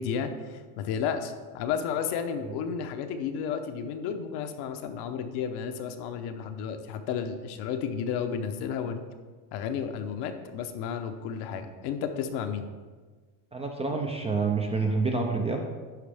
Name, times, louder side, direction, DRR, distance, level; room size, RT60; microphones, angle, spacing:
voice 1, 0.0-9.0 9.5-12.7, left 7 dB, 60° left, 7 dB, 0.8 m, -32 dB
voice 2, 13.5-15.6, right 4 dB, 15° right, 2 dB, 0.4 m, -27 dB
10.5 x 4.2 x 3.4 m, 1.4 s
cardioid pair, 135°, 45 cm